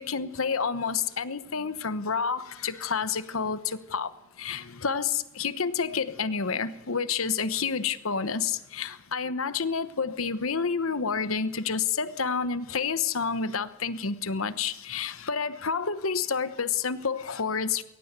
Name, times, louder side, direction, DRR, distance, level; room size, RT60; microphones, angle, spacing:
voice 1, 0.0-4.1 4.4-17.8, left 5 dB, 70° left, 13 dB, 1.0 m, -29 dB
22.0 x 18.0 x 8.1 m, 0.96 s
head